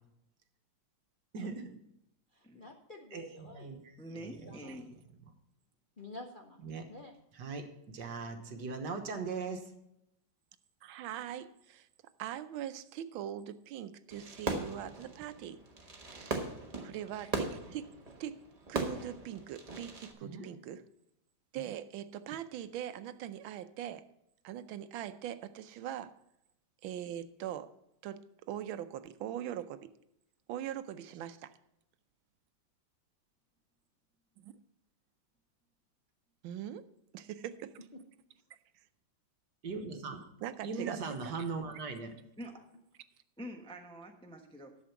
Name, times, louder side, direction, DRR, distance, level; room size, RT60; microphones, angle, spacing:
voice 1, 1.3-1.8 3.1-3.8 4.2-4.6 6.6-6.8 7.3-9.7 20.2-20.5 39.6-40.3 40.6-42.1, right 4 dB, 60° right, 6 dB, 1.7 m, -39 dB
voice 2, 2.3-3.8 4.1-4.9 6.0-6.6 6.9-7.1 37.9-38.0 42.5-42.6, left 2 dB, 50° left, 1 dB, 0.6 m, -50 dB
voice 3, 4.0-5.0 17.2-17.3 42.4-42.7 43.4-44.8, equal, 5° left, 2 dB, 0.6 m, -46 dB
voice 4, 10.8-11.9 12.2-15.6 16.1-16.4 16.8-17.9 18.2-18.4 18.7-20.8 21.5-24.1 24.4-26.1 26.8-27.7 28.0-29.9 30.5-31.5 36.4-36.9 37.1-37.7 40.4-41.3, right 11 dB, 90° right, 12 dB, 1.4 m, -41 dB
Fireworks, 14.1-20.1, right 3 dB, 25° right, 1.0 m, -39 dB
11.0 x 7.2 x 5.8 m, 0.83 s
omnidirectional pair, 2.1 m